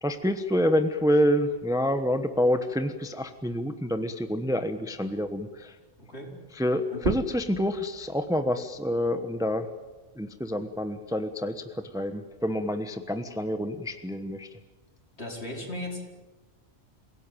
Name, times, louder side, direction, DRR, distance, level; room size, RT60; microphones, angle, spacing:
voice 1, 0.0-5.7 6.5-9.7 10.2-11.6 11.9-14.5, equal, 5° right, 9 dB, 1.1 m, -27 dB
voice 2, 6.0-6.3 6.9-7.0 15.2-16.0, left 1 dB, 60° left, 1 dB, 4.9 m, -36 dB
sound 1, 6.9-12.2 12.6-14.3, right 3 dB, 40° right, 1.2 m, -39 dB
27.5 x 17.5 x 9.2 m, 1.2 s
omnidirectional pair, 1.2 m